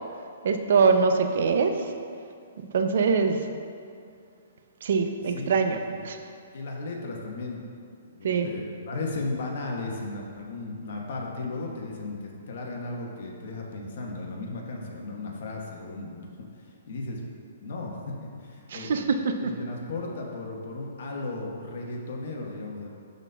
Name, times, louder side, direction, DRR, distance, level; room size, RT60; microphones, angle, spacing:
voice 1, 0.4-1.8 2.7-3.4 4.8-6.2 8.2-8.5 18.7-19.0, right 5 dB, 65° right, 6 dB, 0.5 m, -23 dB
voice 2, 5.3-6.0 6.5-7.6 8.1-16.2 16.9-19.0 19.4-22.9, left 2 dB, 60° left, 0 dB, 1.1 m, -35 dB
11.5 x 4.0 x 2.3 m, 2.4 s
hypercardioid pair, 155°, 0 cm